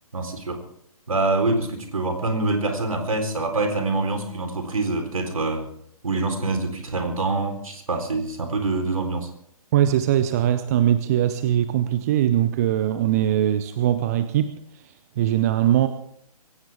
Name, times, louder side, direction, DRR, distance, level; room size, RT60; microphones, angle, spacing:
voice 1, 0.1-0.6 1.1-5.7 6.0-9.3, right 3 dB, 60° right, 6 dB, 3.9 m, -25 dB
voice 2, 9.7-14.6 14.8-15.9, right 11 dB, 25° right, 12 dB, 0.7 m, -21 dB
24.0 x 16.5 x 3.6 m, 0.67 s
figure-of-eight pair, 135°, 20 cm